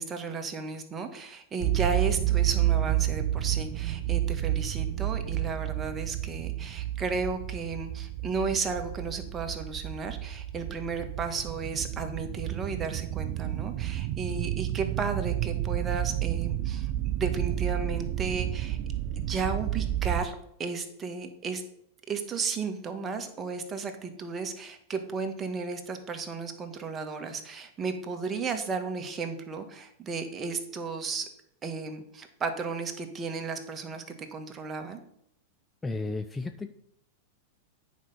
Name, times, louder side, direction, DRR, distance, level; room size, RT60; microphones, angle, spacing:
voice 1, 0.0-18.8 19.1-21.6 22.1-31.2 31.6-35.0, right 4 dB, 20° right, 5 dB, 1.5 m, -34 dB
sound 1, 1.6-20.3, right 13 dB, 50° right, 0.5 m, -30 dB
voice 2, 35.8-36.7, left 3 dB, 15° left, 8 dB, 0.5 m, -33 dB
9.6 x 5.3 x 5.6 m, 0.73 s
figure-of-eight pair, 95°, 0 cm